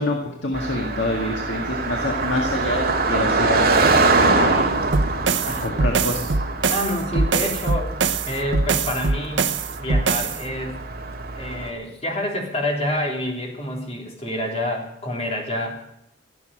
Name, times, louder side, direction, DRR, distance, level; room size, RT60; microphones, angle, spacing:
voice 1, 0.0-3.9 4.1-4.7 5.5-6.4, left 2 dB, 75° left, 1 dB, 1.9 m, -26 dB
Car passing by, 0.5-11.7, right 3 dB, 55° right, 2.0 m, -24 dB
sound 1, 4.9-10.4, right 4 dB, 75° right, 0.9 m, -22 dB
voice 2, 6.7-7.9 8.3-9.4 9.8-10.8 11.4-15.8, left 1 dB, 35° left, 0 dB, 3.5 m, -27 dB
16.5 x 7.4 x 8.7 m, 0.81 s
head